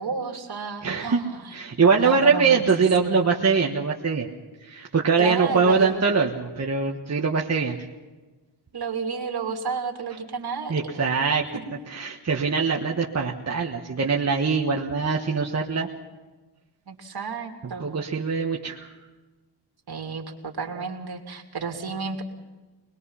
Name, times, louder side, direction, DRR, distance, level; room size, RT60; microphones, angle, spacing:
voice 1, 0.0-1.6 2.0-2.6 3.0-3.2 5.2-6.1 8.7-11.1 16.9-17.9 19.9-22.2, right 5 dB, 60° right, 2 dB, 3.0 m, -32 dB
voice 2, 0.8-1.2 1.5-4.3 4.6-7.8 10.7-11.5 11.9-15.9 17.8-18.9, right 5 dB, 35° right, 0 dB, 1.4 m, -22 dB
24.0 x 21.0 x 5.7 m, 1.2 s
wide cardioid pair, 115°, 43 cm